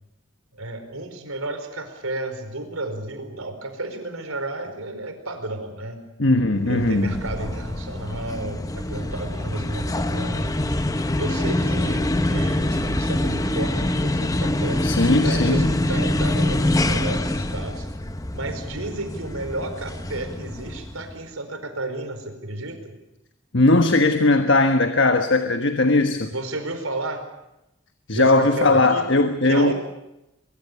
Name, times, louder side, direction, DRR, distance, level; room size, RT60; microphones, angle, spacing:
voice 1, 0.5-6.0 6.6-10.7 11.2-15.0 15.2-17.9 18.3-22.9 26.3-27.2 28.1-29.1 29.4-29.7, right 2 dB, 85° right, 7 dB, 4.8 m, -32 dB
voice 2, 6.2-7.2 14.8-15.6 23.5-26.3 28.1-29.7, left 2 dB, 60° left, 7 dB, 1.4 m, -19 dB
sound 1, 6.6-21.1, left 1 dB, 15° left, 0.9 m, -25 dB
23.5 x 23.5 x 6.9 m, 0.89 s
head